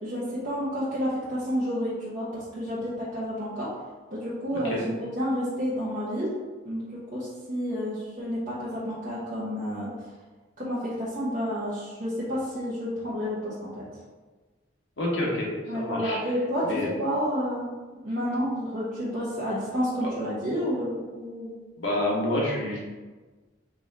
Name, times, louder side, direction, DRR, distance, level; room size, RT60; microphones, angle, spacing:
voice 1, 0.0-3.7 4.1-6.3 6.6-6.8 7.1-9.9 10.6-13.8 15.7-17.7 18.0-21.5, equal, 45° right, -10 dB, 1.0 m, -30 dB
voice 2, 15.0-15.5 15.7-16.2 16.6-16.9 20.0-20.1 21.8-22.8, left 1 dB, 80° left, -4 dB, 1.3 m, -28 dB
5.0 x 2.9 x 3.6 m, 1.3 s
head